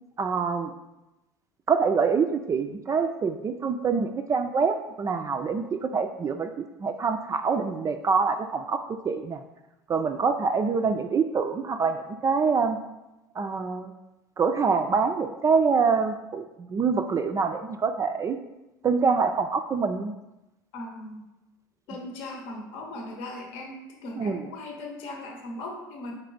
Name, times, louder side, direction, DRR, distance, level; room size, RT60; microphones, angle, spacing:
voice 1, 0.2-0.7 1.7-6.5 6.8-9.4 9.9-12.8 13.4-13.9 14.4-16.4 16.7-18.4 18.8-20.1 24.2-24.5, right 5 dB, 30° right, 7 dB, 0.3 m, -25 dB
voice 2, 20.7-21.2 21.9-26.1, left 2 dB, 65° left, 1 dB, 0.8 m, -38 dB
4.2 x 3.3 x 3.9 m, 0.97 s
hypercardioid pair, 75°, 10 cm